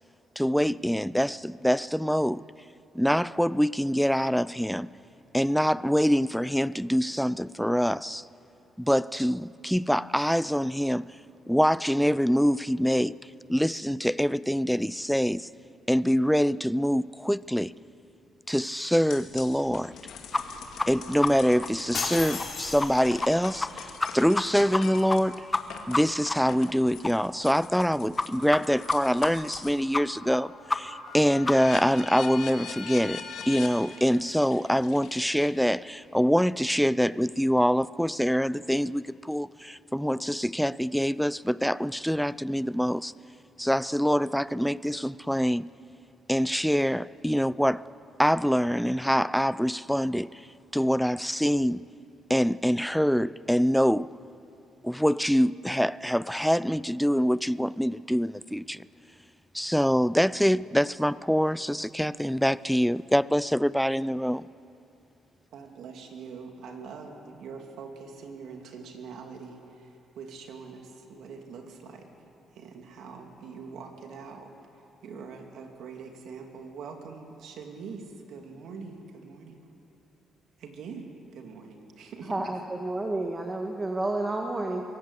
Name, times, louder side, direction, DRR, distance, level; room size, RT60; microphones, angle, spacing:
voice 1, 0.4-2.4 2.9-4.9 5.3-8.2 8.8-11.0 11.5-13.2 13.5-15.5 15.9-17.7 18.5-19.9 20.9-23.9 24.1-25.4 25.9-43.1 43.6-45.6 46.3-47.8 48.2-50.5 50.7-51.8 52.3-54.1 54.8-58.9 59.5-64.4, equal, ahead, 0.4 m, -25 dB
sound 1, 19.1-29.8 30.2-35.9, left 6 dB, 75° left, 2.2 m, -43 dB
sound 2, 20.3-20.4 20.8-20.9 21.2-21.3 21.6-21.7 22.0-22.1 22.4-22.5 22.8-22.9 23.2-23.3 23.6-23.7 24.0-24.4 24.7-24.8 25.1-25.2 25.5-25.6 25.9-26.0 26.3-26.4 26.7-26.8 27.0-27.1 27.4-27.5 27.8-27.9 28.2-28.3 28.5-28.6 28.9-29.0 29.2-29.3 29.6-29.7 29.9-30.0 30.3-30.4 30.7-30.8 31.1-31.2 31.5-31.6 31.8-31.9, left 3 dB, 20° left, 1.0 m, -27 dB
sound 3, 21.9-23.4, left 5 dB, 50° left, 3.6 m, -34 dB
voice 2, 65.5-69.9 70.2-72.1 72.6-74.5 75.0-79.6 80.6-82.5, right 5 dB, 75° right, 2.7 m, -43 dB
voice 3, 82.2-84.8, right 2 dB, 20° right, 1.7 m, -30 dB
23.0 x 17.0 x 8.3 m
cardioid pair, 90°, 0 cm